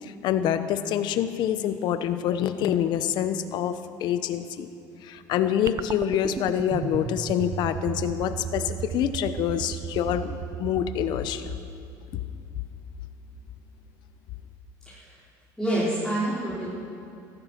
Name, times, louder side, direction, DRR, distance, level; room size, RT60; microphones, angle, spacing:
voice 1, 0.0-4.7 5.0-11.5, left 10 dB, 60° left, 11 dB, 1.0 m, -26 dB
sound 1, 5.7-12.2, right 9 dB, 40° right, 0.6 m, -35 dB
voice 2, 15.6-16.7, right 1 dB, 5° left, -10 dB, 4.9 m, -27 dB
15.0 x 15.0 x 5.9 m, 2.6 s
supercardioid pair, 105°, 8 cm